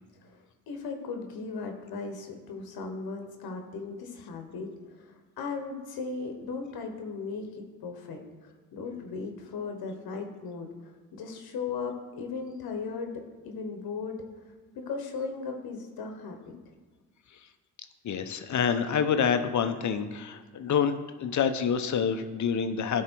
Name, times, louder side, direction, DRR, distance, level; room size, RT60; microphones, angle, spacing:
voice 1, 0.7-4.7 5.1-7.5 7.8-10.7 11.1-14.2 14.7-16.5, left 4 dB, 70° left, 4 dB, 1.1 m, -37 dB
voice 2, 18.0-23.0, left 7 dB, 50° left, 8 dB, 0.7 m, -27 dB
10.0 x 3.6 x 4.5 m, 1.4 s
cardioid pair, 75°, 38 cm